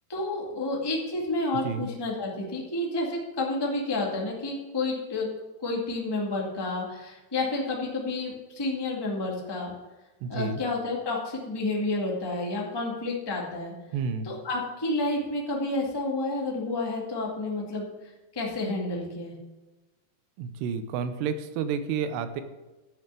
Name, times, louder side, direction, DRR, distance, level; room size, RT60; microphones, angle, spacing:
voice 1, 0.1-5.3 5.6-9.7 10.3-13.7 14.2-19.3, left 2 dB, 25° left, -2 dB, 0.5 m, -30 dB
voice 2, 10.2-10.6 13.9-14.3 20.4-22.4, right 6 dB, 80° right, 10 dB, 2.9 m, -30 dB
11.5 x 6.7 x 8.2 m, 1.1 s
omnidirectional pair, 4.9 m